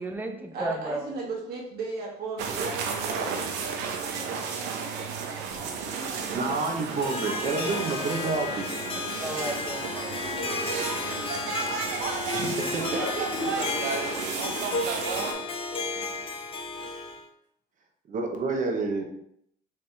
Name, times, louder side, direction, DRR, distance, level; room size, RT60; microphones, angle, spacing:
voice 1, 0.0-1.1 8.9-9.9, right 1 dB, 10° right, 4 dB, 0.6 m, -33 dB
voice 2, 0.5-6.3, right 3 dB, 70° right, -2 dB, 1.5 m, -38 dB
sound 1, 2.4-15.3, right 6 dB, 90° right, 0.7 m, -33 dB
voice 3, 6.3-8.7 12.3-13.2 18.1-19.0, right 3 dB, 50° right, 4 dB, 0.8 m, -29 dB
Harp, 6.7-17.3, left 4 dB, 35° left, 0.6 m, -33 dB
voice 4, 12.7-16.3, left 2 dB, 80° left, -2 dB, 1.6 m, -39 dB
4.3 x 3.3 x 3.3 m, 0.71 s
cardioid pair, 110°, 17 cm